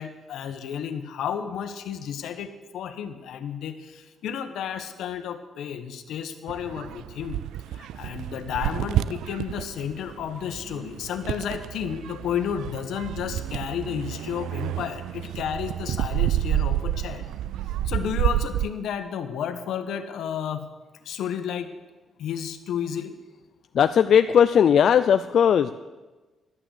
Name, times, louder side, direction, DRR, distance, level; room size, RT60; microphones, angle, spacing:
voice 1, 0.0-7.4 7.7-17.3 17.8-20.7 21.0-21.7 22.2-23.2, left 8 dB, 75° left, 9 dB, 1.2 m, -32 dB
sound 1, 6.5-18.7, right 12 dB, 85° right, 0.3 m, -30 dB
voice 2, 23.7-25.7, left 8 dB, 55° left, 10 dB, 0.4 m, -18 dB
12.0 x 8.9 x 8.1 m, 1.2 s
cardioid pair, 125°, 0 cm